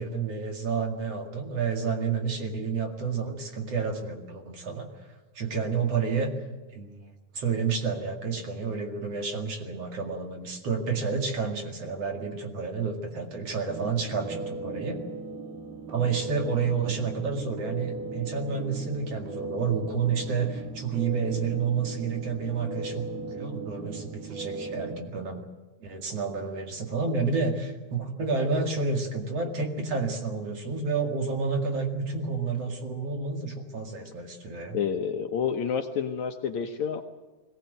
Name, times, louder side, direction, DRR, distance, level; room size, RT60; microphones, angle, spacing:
voice 1, 0.0-6.3 6.7-7.0 7.3-15.0 15.9-25.4 25.8-34.8, right 5 dB, 50° right, 3 dB, 2.9 m, -30 dB
sound 1, 13.7-25.0, right 3 dB, 85° right, 4.0 m, -37 dB
voice 2, 34.7-37.0, left 7 dB, 65° left, 6 dB, 2.0 m, -29 dB
21.0 x 18.0 x 9.2 m, 1.2 s
omnidirectional pair, 4.0 m